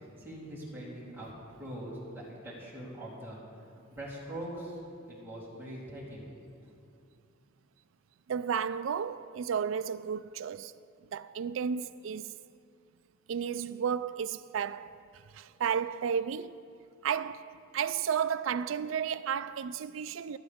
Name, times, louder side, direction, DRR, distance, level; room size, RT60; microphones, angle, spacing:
voice 1, 0.0-4.8 5.1-6.3 6.6-6.8, right 1 dB, 10° right, 3.5 m, -43 dB
voice 2, 8.3-10.7 11.1-12.3 13.3-14.9 15.3-16.6 17.0-20.4, right 7 dB, 70° right, 0.4 m, -33 dB
25.0 x 8.8 x 3.6 m
head